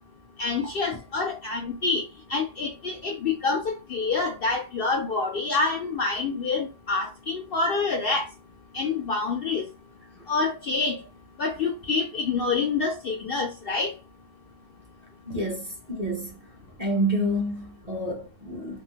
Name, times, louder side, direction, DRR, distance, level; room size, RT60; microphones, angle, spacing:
voice 1, 0.4-2.0 2.3-3.6 3.9-8.2 8.7-9.6 10.3-11.0 11.4-13.9, left 4 dB, 60° left, 0.6 m, -27 dB
voice 2, 15.3-16.3 16.8-18.8, right 1 dB, 40° right, 0.7 m, -28 dB
3.5 x 2.0 x 2.7 m
omnidirectional pair, 1.3 m